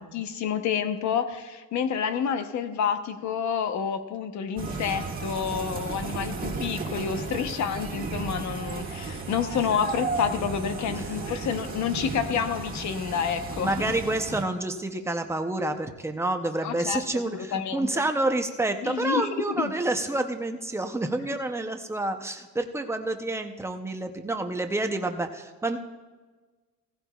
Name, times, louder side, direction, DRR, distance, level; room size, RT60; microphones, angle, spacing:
voice 1, 0.0-13.7 16.6-17.0 17.3-17.9 18.8-19.7, left 7 dB, 60° left, 9 dB, 0.8 m, -29 dB
sound 1, 4.6-14.4, right 4 dB, 25° right, 1.7 m, -34 dB
voice 2, 13.6-25.8, right 2 dB, 10° right, 6 dB, 0.6 m, -28 dB
17.0 x 15.0 x 2.3 m, 1.3 s
cardioid pair, 170°, 33 cm